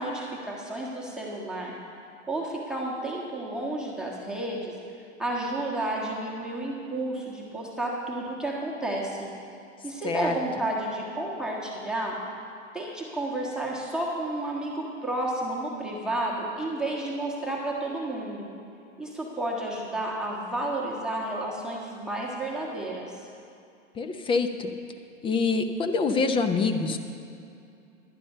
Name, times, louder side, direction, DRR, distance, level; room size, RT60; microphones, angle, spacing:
voice 1, 0.0-1.7 2.3-4.8 5.2-9.3 9.8-12.2 12.7-18.5 19.0-23.2, right 1 dB, ahead, -3 dB, 1.5 m, -31 dB
voice 2, 10.0-10.3 24.0-24.7 25.2-27.0, left 4 dB, 15° left, 7 dB, 0.6 m, -25 dB
11.5 x 9.8 x 5.6 m, 2.6 s
hypercardioid pair, 115°, 37 cm